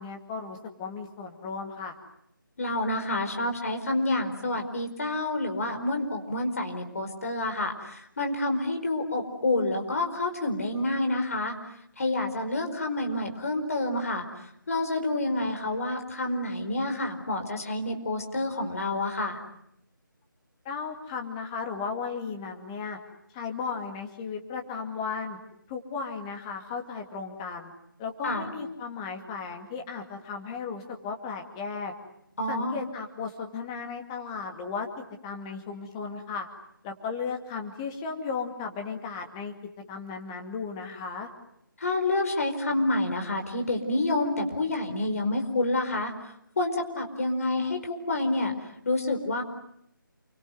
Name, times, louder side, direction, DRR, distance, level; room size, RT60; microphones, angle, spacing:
voice 1, 0.0-1.9 20.6-23.0 23.3-25.4 25.7-27.7 28.0-31.9 32.5-34.9 35.2-36.5 36.8-39.5 39.9-41.3, left 5 dB, 15° left, 3 dB, 2.3 m, -35 dB
voice 2, 2.6-11.5 12.0-19.4 28.2-28.4 32.4-32.8 41.8-48.5 48.8-49.4, left 2 dB, 40° left, 4 dB, 4.8 m, -28 dB
28.5 x 24.5 x 7.9 m, 0.75 s
figure-of-eight pair, 155°, 12 cm